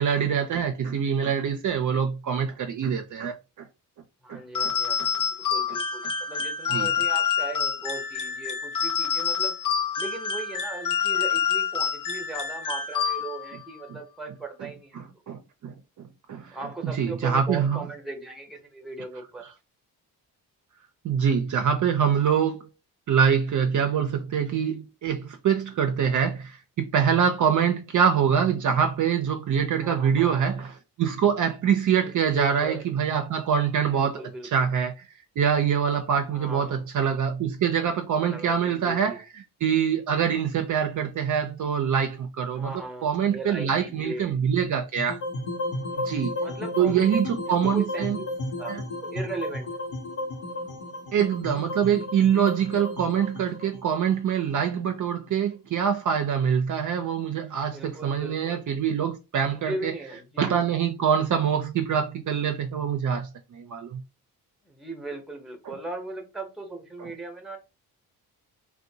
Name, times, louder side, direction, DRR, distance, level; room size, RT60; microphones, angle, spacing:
voice 1, 0.0-3.7 4.3-4.7 5.0-5.1 6.7-6.9 13.9-14.0 15.0-16.6 16.9-17.9 21.0-22.7 23.1-30.7 31.0-35.1 35.4-39.2 39.6-42.7 43.0-45.2 46.0-46.3 46.8-48.2 48.7-48.8 51.1-59.9 60.4-64.0 65.6-65.8 67.0-67.1, right 7 dB, 50° right, 0.5 m, -25 dB
voice 2, 4.2-9.6 10.0-15.0 16.5-19.5 29.8-30.6 32.0-32.8 33.9-34.5 36.3-36.8 38.2-39.2 42.5-44.4 45.9-47.1 47.6-48.1 48.6-49.8 57.7-58.7 59.5-60.8 64.6-67.6, right 2 dB, ahead, 0.7 m, -38 dB
sound 1, 4.5-13.6, left 7 dB, 50° left, 0.6 m, -27 dB
sound 2, 45.0-55.2, left 1 dB, 80° left, 0.9 m, -33 dB
2.5 x 2.2 x 2.7 m
cardioid pair, 75°, 41 cm